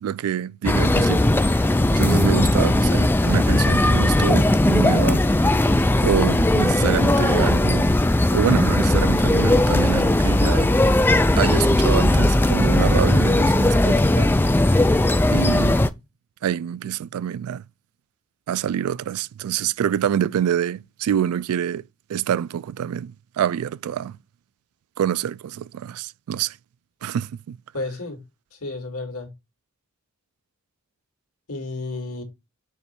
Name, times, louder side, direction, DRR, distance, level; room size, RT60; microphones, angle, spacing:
voice 1, 0.0-5.2 6.0-7.9 8.3-10.7 11.4-14.3 15.3-15.9 16.4-17.6 18.5-21.8 22.1-24.2 25.0-26.6 27.0-27.6, right 9 dB, 90° right, 0.3 m, -26 dB
sound 1, 0.6-15.9, left 1 dB, 10° left, 0.3 m, -18 dB
voice 2, 27.7-28.2 28.5-29.3 31.5-32.2, left 2 dB, 85° left, 2.2 m, -31 dB
7.0 x 3.2 x 4.5 m
head